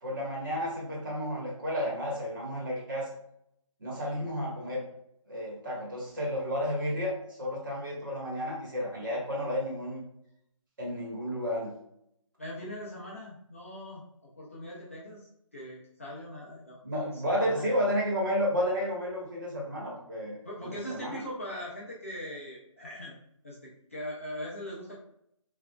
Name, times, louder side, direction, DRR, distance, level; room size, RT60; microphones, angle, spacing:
voice 1, 0.0-3.1 3.8-4.8 5.3-10.0 10.8-11.7 16.8-21.2, equal, 35° right, -4 dB, 1.3 m, -32 dB
voice 2, 12.4-14.0 14.4-17.9 20.4-23.1 23.4-25.0, equal, 25° left, -6 dB, 0.5 m, -41 dB
6.0 x 2.5 x 2.2 m, 0.75 s
figure-of-eight pair, 175°, 17 cm